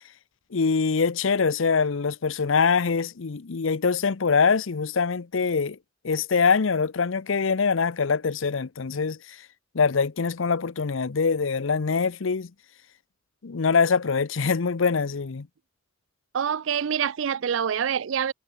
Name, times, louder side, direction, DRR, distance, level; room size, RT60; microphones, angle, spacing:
voice 1, 0.5-5.8 6.0-9.2 9.7-12.5 13.4-15.5, left 5 dB, 70° left, 0.7 m, -24 dB
voice 2, 16.3-18.3, right 8 dB, 70° right, 0.4 m, -26 dB
head